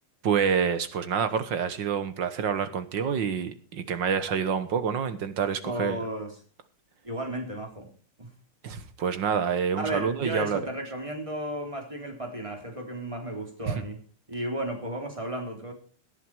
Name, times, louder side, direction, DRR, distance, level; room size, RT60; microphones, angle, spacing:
voice 1, 0.2-6.0 8.6-10.6 13.7-13.8, right 7 dB, 60° right, 12 dB, 1.8 m, -27 dB
voice 2, 5.6-6.4 7.0-7.9 8.2-8.3 9.7-14.0 14.3-15.7, right 1 dB, 15° right, 3 dB, 3.3 m, -33 dB
18.0 x 11.0 x 4.7 m, 0.39 s
omnidirectional pair, 2.3 m